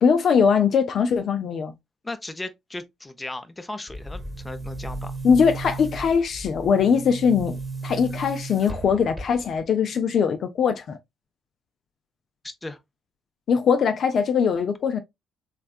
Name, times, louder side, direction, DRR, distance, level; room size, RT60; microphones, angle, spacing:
voice 1, 0.0-1.7 5.2-11.0 13.5-15.0, left 6 dB, 55° left, 0.5 m, -21 dB
voice 2, 2.0-5.2 12.4-12.8, left 2 dB, 15° left, 0.8 m, -36 dB
Boom, 3.9-9.7, right 3 dB, 10° right, 1.3 m, -35 dB
3.4 x 3.3 x 2.4 m
figure-of-eight pair, 45°, 0 cm